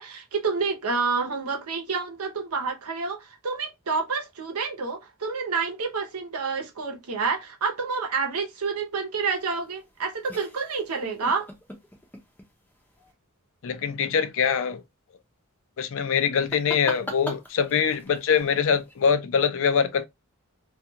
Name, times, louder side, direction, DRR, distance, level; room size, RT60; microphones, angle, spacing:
voice 1, 0.0-11.5, right 4 dB, 85° right, 0.8 m, -28 dB
sound 1, 9.2-13.1 16.3-19.1, equal, 10° left, 0.5 m, -42 dB
voice 2, 13.6-14.8 15.8-20.1, left 7 dB, 60° left, 0.4 m, -23 dB
2.4 x 2.3 x 2.7 m
head